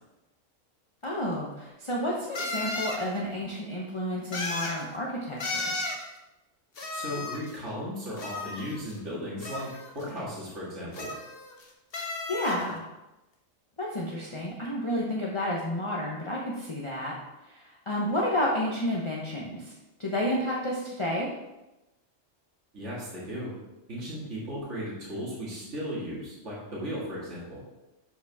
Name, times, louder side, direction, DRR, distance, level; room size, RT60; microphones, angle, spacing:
sound 1, 1.0-1.1 2.3-3.0 4.3-4.8 5.4-6.0 6.8-7.6 8.2-9.0 9.4-10.0 10.9-11.6 11.9-12.6, left 2 dB, 50° left, 1.2 m, -34 dB
voice 1, 1.0-5.7 12.3-12.8 13.8-17.2 17.5-19.7 20.0-21.3, left 1 dB, 25° left, -4 dB, 1.0 m, -31 dB
voice 2, 6.9-9.7 9.9-11.1 22.7-23.5 23.9-27.6, equal, 65° right, -6 dB, 2.5 m, -36 dB
11.5 x 5.2 x 3.6 m, 1.0 s
omnidirectional pair, 1.3 m